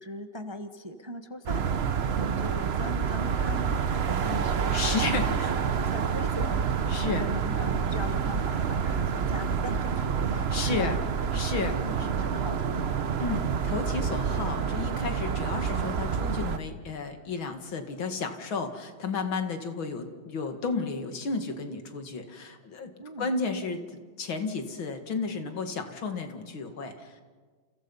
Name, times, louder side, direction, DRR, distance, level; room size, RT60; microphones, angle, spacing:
voice 1, 0.0-1.8 2.2-3.6 4.1-6.6 7.0-10.2 10.6-10.9 11.7-13.0 23.0-23.3, equal, 20° right, 7 dB, 0.9 m, -39 dB
sound 1, 1.5-16.6, right 6 dB, 50° right, 0.8 m, -28 dB
voice 2, 4.7-5.5 6.9-7.3 10.3-11.0 11.3-11.7 13.2-22.9 23.2-27.1, left 4 dB, 80° left, 6 dB, 2.7 m, -32 dB
30.0 x 28.5 x 5.5 m, 1.5 s
omnidirectional pair, 2.1 m